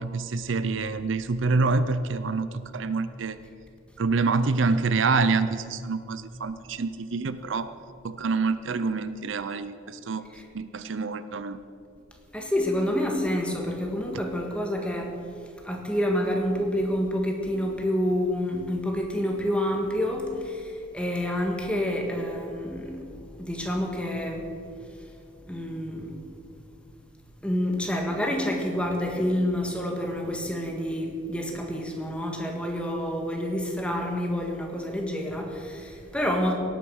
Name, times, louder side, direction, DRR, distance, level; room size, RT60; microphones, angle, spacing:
voice 1, 0.0-3.4 4.0-7.7 8.0-10.2 10.5-11.6, right 4 dB, 65° right, 13 dB, 0.5 m, -26 dB
voice 2, 12.3-15.2 15.6-23.1 23.4-24.5 25.5-26.2 27.4-36.6, equal, 5° left, 1 dB, 1.7 m, -28 dB
17.5 x 9.0 x 6.3 m, 2.5 s
head